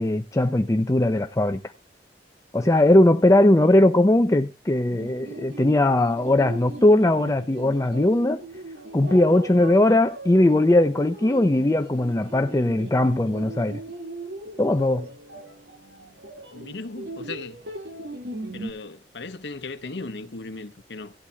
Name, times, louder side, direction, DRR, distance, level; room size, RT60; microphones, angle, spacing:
voice 1, 0.0-1.6 2.5-8.4 8.9-13.8 14.6-15.1, left 1 dB, 20° left, 0.5 m, -19 dB
sound 1, 4.9-18.7, right 1 dB, 70° right, 2.2 m, -39 dB
voice 2, 16.5-17.6 18.5-21.1, left 3 dB, 80° left, 0.9 m, -37 dB
17.0 x 11.0 x 2.3 m
head